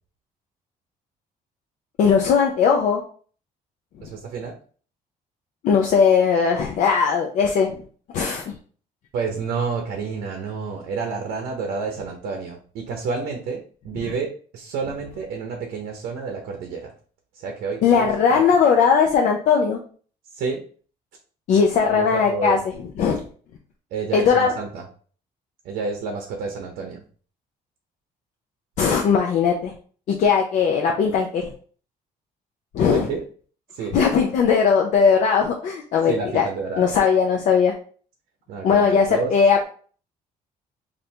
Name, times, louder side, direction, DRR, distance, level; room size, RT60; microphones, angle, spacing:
voice 1, 2.0-3.0 4.0-4.1 5.6-7.7 8.1-8.5 17.8-19.8 21.5-22.6 23.0-23.2 24.1-24.5 28.8-29.7 30.1-31.5 32.7-33.1 33.9-36.5 36.8-37.7 38.6-39.6, left 6 dB, 50° left, 1 dB, 0.5 m, -19 dB
voice 2, 4.0-4.5 9.1-14.3 14.5-16.9 17.3-18.4 20.3-20.6 21.8-22.6 23.9-24.9 25.6-27.0 32.9-33.2 33.7-34.0 36.1-36.9 38.5-39.3, right 5 dB, 70° right, 3 dB, 0.7 m, -29 dB
3.3 x 2.6 x 4.3 m, 0.43 s
cardioid pair, 180°, 16 cm